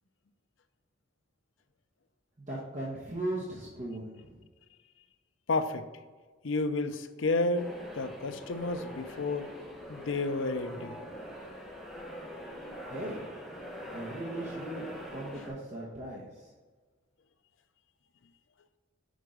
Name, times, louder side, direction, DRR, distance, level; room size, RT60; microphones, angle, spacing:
voice 1, 2.5-4.4 12.9-13.2 13.9-14.8 15.1-16.5, right 1 dB, 35° right, -5 dB, 1.1 m, -38 dB
voice 2, 5.5-5.9 6.4-9.5 9.9-10.9, left 2 dB, 85° left, 10 dB, 0.6 m, -31 dB
sound 1, 7.5-15.5, equal, ahead, 1.5 m, -43 dB
6.5 x 4.6 x 5.0 m, 1.4 s
head